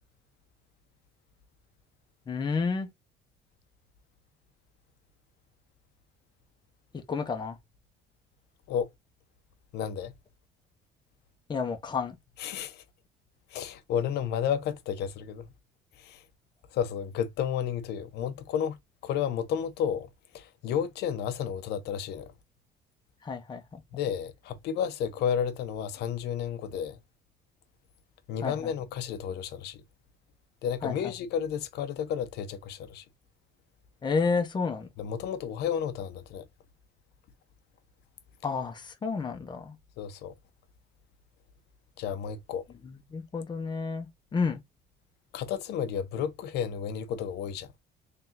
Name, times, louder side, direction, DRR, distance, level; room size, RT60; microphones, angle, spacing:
voice 1, 2.3-2.9 6.9-7.6 11.5-12.2 23.2-23.8 28.4-28.7 30.8-31.1 34.0-34.9 38.4-39.8 42.8-44.6, left 5 dB, 25° left, 0.9 m, -31 dB
voice 2, 9.7-10.1 12.4-12.8 13.5-15.5 15.9-16.2 16.7-18.8 19.0-22.3 23.9-27.0 28.3-29.8 30.6-33.0 35.0-36.5 40.0-40.3 42.0-42.6 45.3-47.7, left 8 dB, 80° left, 0.8 m, -32 dB
3.7 x 3.4 x 2.8 m
cardioid pair, 110°, 17 cm